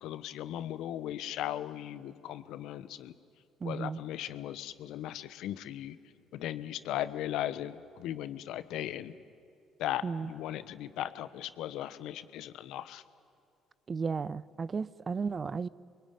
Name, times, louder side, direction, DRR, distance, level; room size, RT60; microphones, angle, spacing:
voice 1, 0.0-3.1 3.6-6.0 6.3-9.1 9.8-13.0, left 12 dB, 70° left, 1.1 m, -37 dB
voice 2, 3.6-4.0 10.0-10.3 13.9-15.7, right 5 dB, 40° right, 0.7 m, -34 dB
28.0 x 22.5 x 9.5 m
hypercardioid pair, 55°, 0 cm